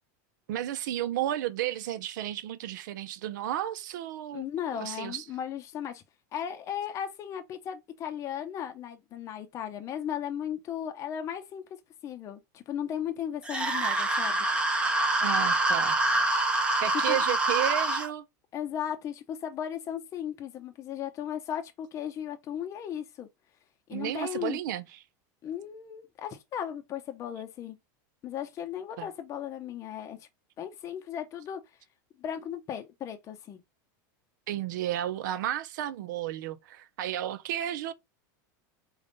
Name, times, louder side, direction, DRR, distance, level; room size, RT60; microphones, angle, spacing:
voice 1, 0.5-4.4 4.7-5.2 15.2-16.1 16.8-18.2 23.9-24.9 29.0-29.1 34.5-37.9, right 12 dB, 80° right, 0.5 m, -32 dB
voice 2, 4.3-6.0 6.3-11.6 12.0-14.5 17.1-17.2 18.5-23.3 23.9-24.6 25.4-27.8 28.2-30.3 30.6-31.6 32.2-33.6, left 9 dB, 30° left, 0.6 m, -36 dB
sound 1, 13.5-18.1, right 2 dB, 10° right, 0.7 m, -26 dB
3.5 x 2.3 x 3.9 m
supercardioid pair, 140°, 10 cm